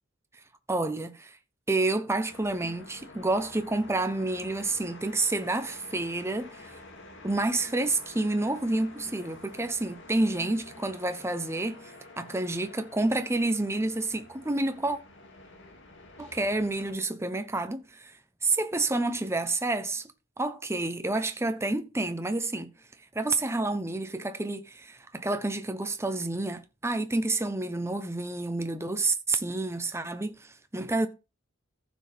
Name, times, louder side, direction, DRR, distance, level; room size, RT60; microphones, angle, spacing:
voice 1, 0.7-1.4 1.7-6.8 7.2-15.0 16.2-18.1 18.4-20.0 20.4-22.7 23.1-31.1, right 2 dB, 15° right, 0.9 m, -29 dB
sound 1, 2.3-17.0, left 2 dB, 60° left, 2.5 m, -49 dB
14.5 x 6.3 x 3.5 m
head